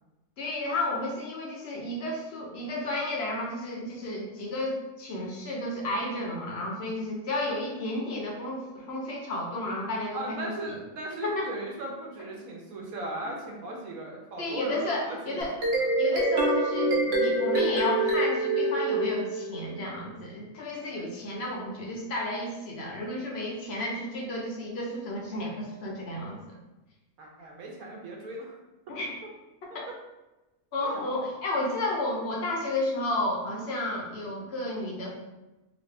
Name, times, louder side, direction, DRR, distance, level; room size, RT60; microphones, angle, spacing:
voice 1, 0.4-10.5 11.2-11.5 14.4-15.5 16.0-26.5 28.9-29.1 29.6-29.8 30.7-35.1, left 1 dB, 55° left, -2 dB, 0.8 m, -32 dB
voice 2, 10.1-15.9 27.2-28.6 29.9-30.0 30.8-31.0, right 2 dB, 75° right, -1 dB, 1.1 m, -38 dB
sound 1, 15.4-19.8, right 1 dB, 60° right, 0.7 m, -25 dB
3.0 x 2.6 x 3.2 m, 1.0 s
omnidirectional pair, 1.5 m